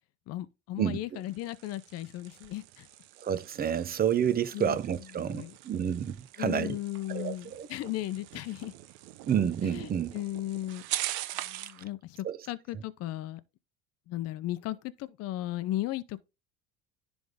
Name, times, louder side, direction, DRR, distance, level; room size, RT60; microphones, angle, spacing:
voice 1, 0.3-2.9 4.5-4.8 5.2-5.5 6.4-8.7 9.7-10.8 11.4-13.4 14.1-16.2, left 15 dB, 55° left, 0.7 m, -36 dB
sound 1, 1.1-11.8, right 15 dB, 75° right, 0.8 m, -42 dB
voice 2, 3.2-6.8 7.1-7.7 9.2-10.1 12.2-12.4, right 9 dB, 30° right, 0.8 m, -29 dB
10.5 x 3.5 x 3.6 m
supercardioid pair, 95°, 29 cm